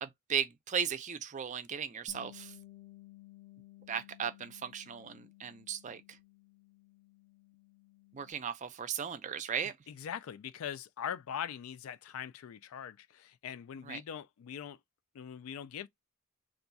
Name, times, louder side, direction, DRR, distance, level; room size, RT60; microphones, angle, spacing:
voice 1, 0.0-2.6 3.9-6.2 8.1-9.7 13.8-14.0, right 7 dB, 35° right, 0.4 m, -36 dB
Bass guitar, 2.1-8.3, left 16 dB, 30° left, 0.6 m, -56 dB
voice 2, 9.9-14.8 15.1-15.9, left 8 dB, 80° left, 0.3 m, -41 dB
2.4 x 2.3 x 3.9 m
head